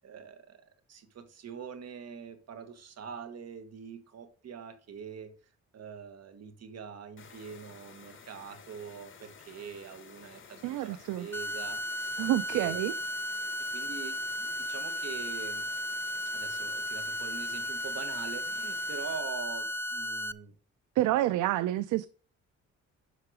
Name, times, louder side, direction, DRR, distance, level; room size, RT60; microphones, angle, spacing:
voice 1, 0.0-5.3 5.7-13.0 13.7-15.7 16.3-20.5, right 7 dB, 55° right, 1.6 m, -44 dB
sound 1, 7.2-19.2, left 6 dB, 40° left, 1.6 m, -53 dB
voice 2, 10.6-11.3 12.2-12.9 21.0-22.1, right 14 dB, 80° right, 0.5 m, -28 dB
sound 2, 11.3-20.3, equal, 10° left, 0.4 m, -35 dB
8.1 x 5.8 x 5.0 m
cardioid pair, 90°, 30 cm